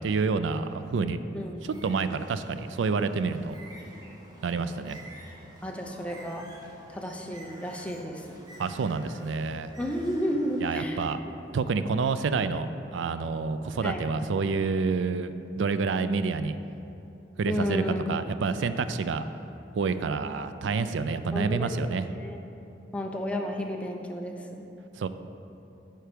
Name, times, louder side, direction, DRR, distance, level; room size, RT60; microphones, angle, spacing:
voice 1, 0.0-1.2 1.8-3.6 4.4-5.0 8.6-9.7 10.6-11.2 11.5-16.6 17.4-17.8 18.1-19.2 19.7-22.0 25.0-25.1, right 4 dB, 80° right, 12 dB, 0.4 m, -28 dB
voice 2, 1.0-1.6 5.6-6.5 6.9-8.4 9.8-11.1 13.8-14.2 17.4-18.0 21.3-22.4 22.9-24.7, equal, 5° left, 1 dB, 0.6 m, -32 dB
Bird, 1.6-10.7, right 1 dB, 25° right, 1.1 m, -50 dB
9.3 x 4.5 x 5.1 m, 2.8 s
head